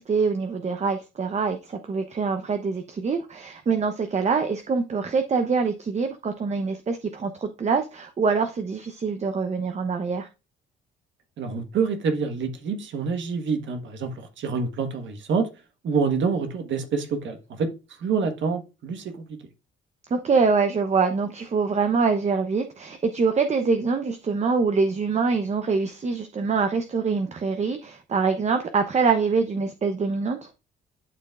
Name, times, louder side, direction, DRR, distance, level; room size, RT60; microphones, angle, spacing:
voice 1, 0.0-10.3 20.1-30.5, right 5 dB, 35° right, 0.8 m, -24 dB
voice 2, 11.4-15.5 15.8-17.7 18.0-19.4, right 5 dB, 70° right, 1.4 m, -27 dB
11.5 x 4.4 x 2.4 m
cardioid pair, 90°, 20 cm